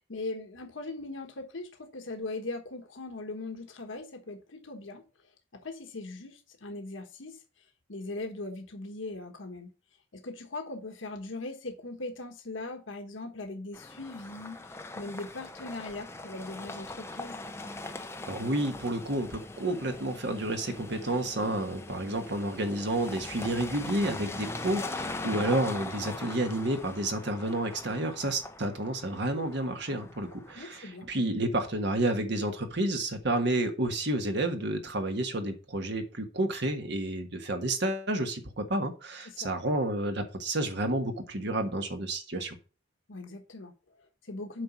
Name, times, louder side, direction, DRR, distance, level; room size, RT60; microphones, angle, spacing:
voice 1, 0.0-5.0 5.6-7.4 7.9-9.7 10.1-17.4 30.5-31.1 39.2-39.5 43.1-44.6, left 2 dB, 75° left, 1.2 m, -40 dB
sound 1, 13.7-30.7, left 2 dB, 15° left, 0.7 m, -41 dB
voice 2, 18.3-42.6, right 1 dB, 60° right, 1.5 m, -30 dB
8.0 x 4.9 x 6.0 m
head